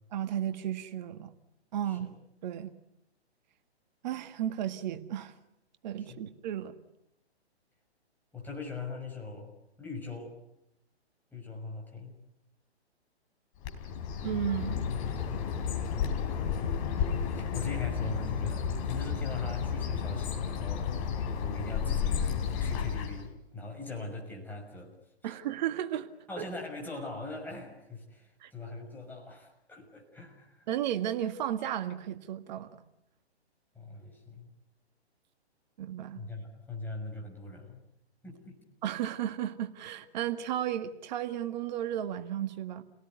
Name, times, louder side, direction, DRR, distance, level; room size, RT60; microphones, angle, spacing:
voice 1, 0.1-1.3 1.7-2.1 2.4-2.7 4.0-5.3 5.8-6.7 14.2-14.9 25.2-26.1 26.4-26.5 28.4-28.5 30.7-32.8 35.8-36.2 38.8-42.8, right 11 dB, 40° right, 9 dB, 1.9 m, -34 dB
voice 2, 8.3-10.4 11.3-12.1 17.3-20.9 21.2-24.9 25.2-25.4 26.3-30.7 33.7-34.5 36.1-37.8 38.2-38.6, left 3 dB, 5° left, 0 dB, 6.3 m, -41 dB
Bird, 13.6-23.3, left 7 dB, 30° left, 3.6 m, -32 dB
30.0 x 18.5 x 9.5 m, 0.83 s
hypercardioid pair, 135°, 33 cm